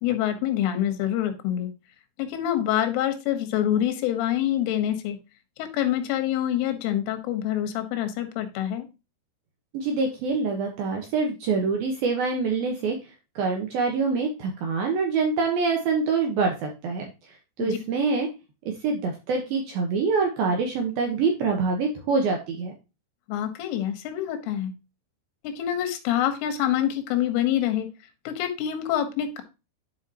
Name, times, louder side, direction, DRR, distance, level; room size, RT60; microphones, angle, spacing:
voice 1, 0.0-1.7 2.2-5.2 5.6-8.9 17.6-17.8 23.3-24.7 25.4-27.9 28.3-29.4, left 11 dB, 85° left, 8 dB, 3.7 m, -26 dB
voice 2, 9.7-13.0 13.4-17.1 17.6-18.3 18.7-22.7, right 4 dB, 75° right, 2 dB, 2.3 m, -25 dB
11.0 x 5.3 x 2.8 m, 0.28 s
omnidirectional pair, 5.6 m